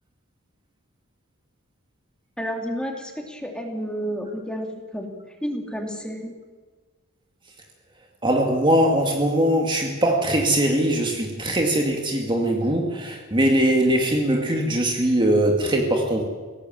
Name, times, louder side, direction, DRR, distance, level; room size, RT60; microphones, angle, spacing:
voice 1, 2.4-6.3, equal, 5° left, 2 dB, 2.8 m, -31 dB
voice 2, 8.2-16.2, right 1 dB, 25° right, 2 dB, 2.2 m, -21 dB
22.5 x 18.0 x 7.3 m, 1.4 s
head